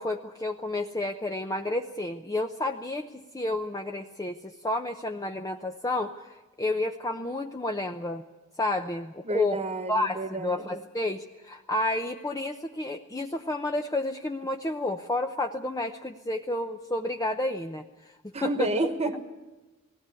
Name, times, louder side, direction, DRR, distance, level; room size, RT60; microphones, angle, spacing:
voice 1, 0.0-8.2 8.6-9.6 9.9-18.2 18.4-18.7, left 2 dB, 15° left, 4 dB, 0.7 m, -31 dB
voice 2, 9.2-10.8 18.3-19.2, right 1 dB, 30° right, 8 dB, 1.4 m, -30 dB
19.5 x 17.0 x 9.7 m, 1.1 s
head